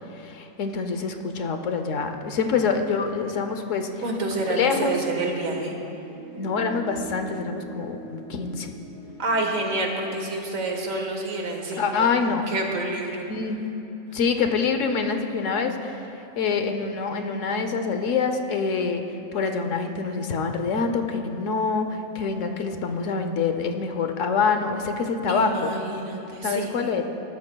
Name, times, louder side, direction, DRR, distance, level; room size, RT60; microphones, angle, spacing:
voice 1, 0.1-4.0 4.6-5.0 6.4-8.7 11.8-12.5 13.3-13.6 14.1-16.1 16.3-19.0 19.3-25.7 26.4-27.0, left 5 dB, 70° left, 6 dB, 1.2 m, -26 dB
voice 2, 4.0-5.8 9.2-11.9 12.5-13.2 25.3-26.7, right 2 dB, 85° right, 1 dB, 1.8 m, -28 dB
sound 1, 4.6-9.7, right 2 dB, 40° right, 1.5 m, -42 dB
20.5 x 13.0 x 2.3 m, 2.9 s
omnidirectional pair, 1.4 m